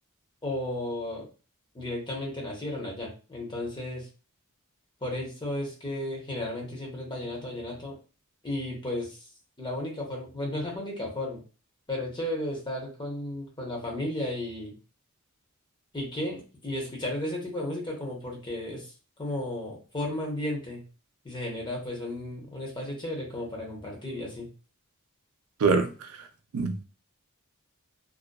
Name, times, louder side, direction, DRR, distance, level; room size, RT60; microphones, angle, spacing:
voice 1, 0.4-1.3 1.7-4.1 5.0-8.0 8.4-9.2 9.6-11.4 11.9-14.7 15.9-18.9 19.2-20.8 21.2-24.5, left 1 dB, 20° left, 0.8 m, -34 dB
voice 2, 25.6-26.3 26.5-26.8, right 4 dB, 80° right, 0.4 m, -25 dB
2.5 x 2.2 x 2.2 m
head